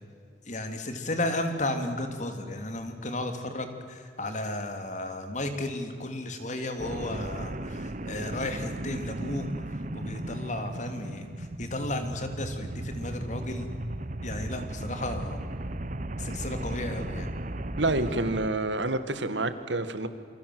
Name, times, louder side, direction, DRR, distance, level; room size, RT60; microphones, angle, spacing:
voice 1, 0.5-9.5 9.9-13.7 14.2-15.4 16.2-17.3, left 1 dB, 40° left, 6 dB, 3.3 m, -33 dB
sound 1, 6.8-18.5, right 1 dB, 45° right, 1.1 m, -36 dB
voice 2, 17.8-20.1, right 2 dB, 75° right, 11 dB, 2.1 m, -28 dB
28.5 x 25.5 x 8.0 m, 2.2 s
head